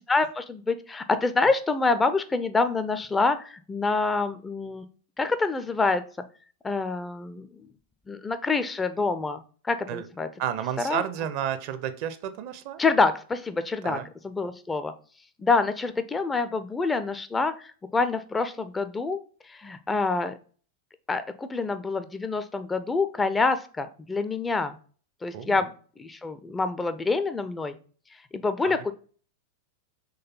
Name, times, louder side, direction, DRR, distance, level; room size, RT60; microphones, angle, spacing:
voice 1, 0.1-4.9 5.2-6.0 6.6-7.5 8.1-10.3 10.8-11.0 12.8-14.0 14.2-14.9 15.4-19.2 19.5-20.3 21.1-24.8 25.2-25.7 26.0-27.8 28.3-28.9, left 3 dB, 15° left, 11 dB, 0.4 m, -26 dB
voice 2, 10.4-12.8 13.8-14.1 25.3-25.6 28.6-28.7, right 10 dB, 45° right, 12 dB, 0.5 m, -31 dB
3.9 x 3.1 x 4.2 m, 0.41 s
figure-of-eight pair, 90°, 0 cm